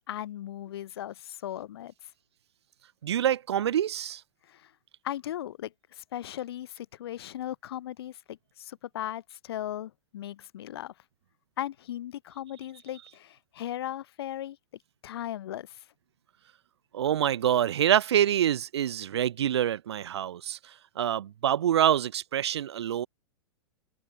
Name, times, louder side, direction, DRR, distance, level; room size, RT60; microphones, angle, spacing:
voice 1, 0.1-2.1 4.5-4.7 5.0-10.9 11.6-14.6 15.0-15.8, left 12 dB, 55° left, 0.5 m, -37 dB
voice 2, 3.0-4.2 16.9-20.6 21.0-23.1, right 10 dB, 60° right, 0.7 m, -26 dB
figure-of-eight pair, 105°, 16 cm